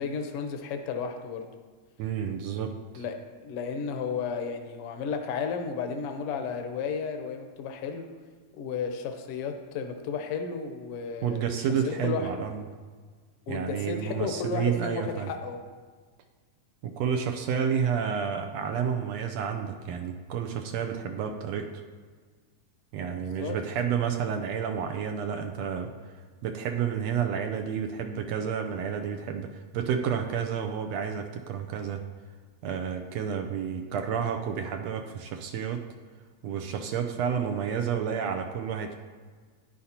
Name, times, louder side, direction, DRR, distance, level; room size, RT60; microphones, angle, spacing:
voice 1, 0.0-1.5 3.0-8.1 8.5-12.4 13.5-15.6 23.2-23.6, left 5 dB, 70° left, 5 dB, 1.5 m, -33 dB
voice 2, 2.0-3.0 11.2-12.6 13.5-15.3 16.8-21.7 22.9-25.9 26.4-32.0 32.6-35.8 36.4-39.0, right 7 dB, 75° right, 5 dB, 1.7 m, -30 dB
12.0 x 10.0 x 2.9 m, 1.5 s
omnidirectional pair, 3.3 m